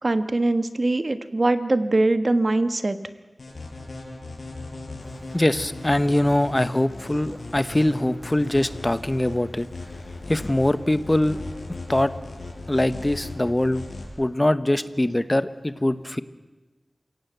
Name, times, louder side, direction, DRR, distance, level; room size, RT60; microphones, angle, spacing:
voice 1, 0.0-3.0, right 2 dB, 50° right, 10 dB, 1.3 m, -22 dB
sound 1, 3.4-14.1, left 2 dB, 85° left, 5.3 m, -38 dB
voice 2, 5.3-9.7 10.3-11.4 11.9-12.1 12.7-13.8 14.2-16.2, left 1 dB, 20° left, 12 dB, 1.1 m, -22 dB
28.0 x 17.5 x 8.1 m, 1.2 s
wide cardioid pair, 70°, 0 cm